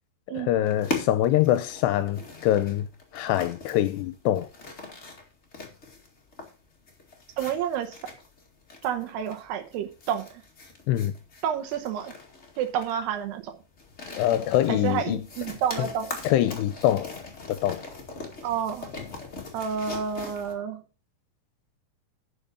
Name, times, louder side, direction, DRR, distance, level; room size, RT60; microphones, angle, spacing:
voice 1, 0.4-2.9 3.1-4.5 10.9-11.1 14.2-15.3 15.8-15.9 16.2-17.1 17.5-17.8, left 13 dB, 80° left, 2.6 m, -24 dB
sound 1, 0.7-20.5, left 3 dB, 40° left, 0.9 m, -41 dB
voice 2, 7.4-8.0 8.8-10.4 11.4-12.1 12.6-13.5 14.7-16.2 18.4-18.9 19.5-20.8, right 8 dB, 75° right, 2.9 m, -29 dB
11.0 x 6.5 x 5.2 m
omnidirectional pair, 5.0 m